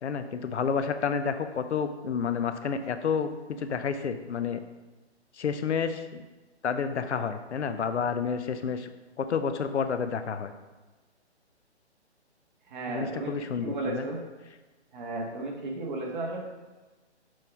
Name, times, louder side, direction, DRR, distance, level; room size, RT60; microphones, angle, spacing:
voice 1, 0.0-3.3 3.6-4.6 5.3-6.2 6.6-8.9 9.2-10.5 12.9-14.0, left 6 dB, 75° left, 9 dB, 0.6 m, -30 dB
voice 2, 12.7-14.2 14.9-16.4, right 2 dB, 45° right, -1 dB, 1.4 m, -34 dB
6.2 x 4.6 x 3.5 m, 1.2 s
hypercardioid pair, 145°, 34 cm